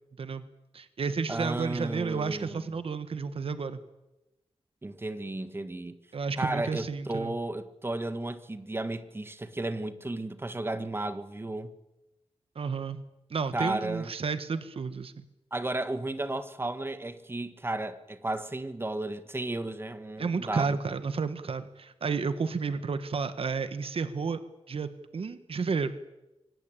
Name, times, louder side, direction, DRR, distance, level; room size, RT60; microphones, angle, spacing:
voice 1, 0.7-3.8 6.1-7.4 12.5-13.0 13.3-15.2 20.2-24.4 24.7-25.9, right 5 dB, 60° right, 1.5 m, -31 dB
voice 2, 1.3-2.6 4.8-6.0 6.4-11.7 13.5-14.1 15.5-20.8, right 2 dB, 20° right, 1.6 m, -34 dB
25.5 x 19.0 x 8.9 m
wide cardioid pair, 120°, 11 cm